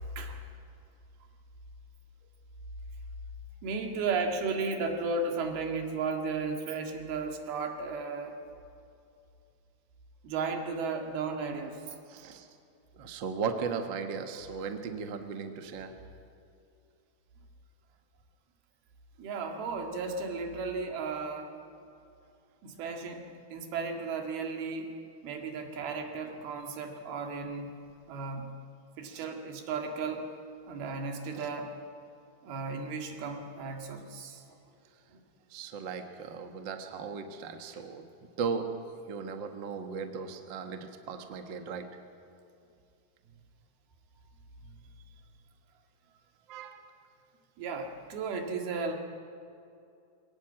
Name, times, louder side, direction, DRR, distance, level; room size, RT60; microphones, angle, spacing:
voice 1, 3.6-8.3 10.2-12.0 19.2-21.5 22.6-24.9 25.2-27.7 28.1-28.5 29.0-30.3 30.7-31.7 32.4-34.6 44.6-44.8 47.6-48.9, right 4 dB, 80° right, 3 dB, 3.9 m, -34 dB
voice 2, 12.1-12.5 12.9-15.9 29.1-29.2 31.3-31.5 35.5-38.0 38.4-38.7 39.1-41.9 46.5-46.9, right 5 dB, 60° right, 5 dB, 1.2 m, -37 dB
23.5 x 18.0 x 8.8 m, 2.6 s
omnidirectional pair, 4.4 m